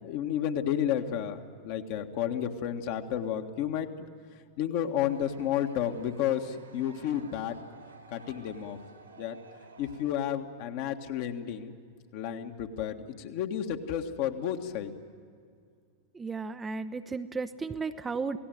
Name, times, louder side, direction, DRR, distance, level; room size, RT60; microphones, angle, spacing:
voice 1, 0.0-3.9 4.6-7.6 8.1-8.8 9.2-9.4 9.8-11.7 12.1-14.9, left 10 dB, 45° left, 5 dB, 1.6 m, -31 dB
sound 1, 5.0-10.1, right 3 dB, 80° right, 2.6 m, -53 dB
voice 2, 16.1-18.4, right 4 dB, 15° right, 9 dB, 0.8 m, -34 dB
28.0 x 18.0 x 7.8 m, 2.2 s
figure-of-eight pair, 90°, 0 cm